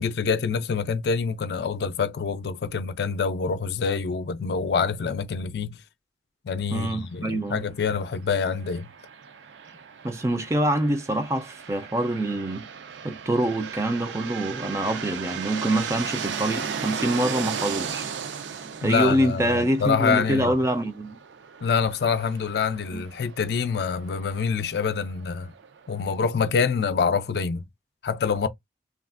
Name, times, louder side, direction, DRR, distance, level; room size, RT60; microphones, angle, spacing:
voice 1, 0.0-5.8 6.4-8.9 18.8-20.5 21.6-25.5 25.9-27.6 28.0-28.5, left 5 dB, 65° left, 0.4 m, -26 dB
voice 2, 6.7-7.6 10.0-12.7 13.0-18.1 18.8-21.2 22.9-23.0, right 1 dB, 15° right, 0.4 m, -25 dB
sound 1, 8.5-26.1, right 7 dB, 85° right, 0.4 m, -36 dB
3.2 x 2.3 x 2.4 m
head